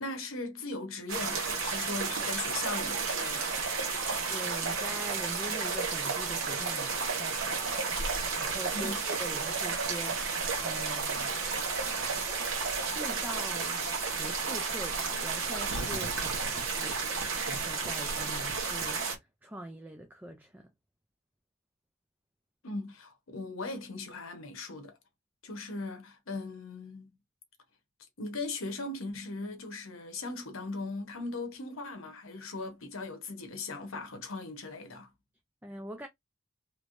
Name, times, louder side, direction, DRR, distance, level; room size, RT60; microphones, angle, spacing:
voice 1, 0.0-3.6 8.7-9.0 22.6-25.0 25.4-27.2 28.2-35.1, left 3 dB, 70° left, 1.0 m, -39 dB
sound 1, 1.1-19.2, right 4 dB, 70° right, 1.3 m, -32 dB
sound 2, 2.6-13.4, right 4 dB, 55° right, 0.7 m, -41 dB
voice 2, 4.3-7.9 8.4-11.4 12.8-17.0 17.5-20.7 35.6-36.1, right 1 dB, 10° right, 0.4 m, -43 dB
3.3 x 3.0 x 2.5 m
head